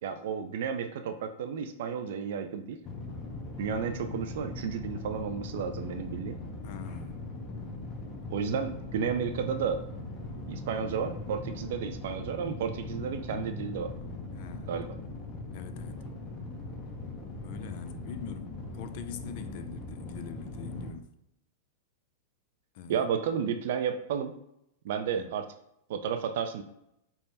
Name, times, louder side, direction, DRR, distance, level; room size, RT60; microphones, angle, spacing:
voice 1, 0.0-2.8 3.6-6.4 8.3-9.8 10.5-13.9 14.7-14.9 22.9-24.3 24.8-25.5 25.9-26.6, right 7 dB, 65° right, 0.4 m, -32 dB
sound 1, 2.8-20.9, left 2 dB, 30° left, 0.8 m, -40 dB
voice 2, 6.6-7.2 14.3-14.9 15.5-16.1 17.4-21.1 22.7-23.1 25.1-25.3, left 7 dB, 55° left, 0.4 m, -43 dB
3.4 x 2.1 x 4.0 m
hypercardioid pair, 110°, 0 cm